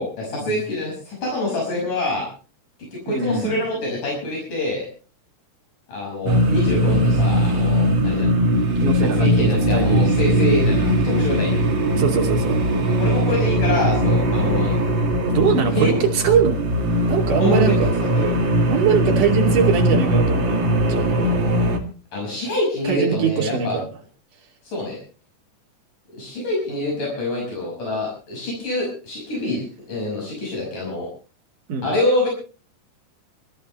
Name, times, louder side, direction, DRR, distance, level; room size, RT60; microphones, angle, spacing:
voice 1, 0.0-2.3 2.9-4.9 5.9-8.3 9.1-11.6 13.0-14.8 15.7-16.0 17.4-17.7 18.2-18.3 22.1-23.8 24.6-25.0 26.1-31.1 31.8-32.3, left 1 dB, 70° left, -1 dB, 7.4 m, -25 dB
voice 2, 3.1-3.5 8.8-10.2 12.0-12.6 15.3-16.6 17.0-17.9 18.7-20.6 20.9-21.6 22.8-23.9 31.7-31.9, right 6 dB, 75° right, 2 dB, 4.1 m, -22 dB
sound 1, 6.3-21.8, equal, 40° right, 2.6 m, -20 dB
24.5 x 13.5 x 3.2 m, 0.36 s
omnidirectional pair, 3.7 m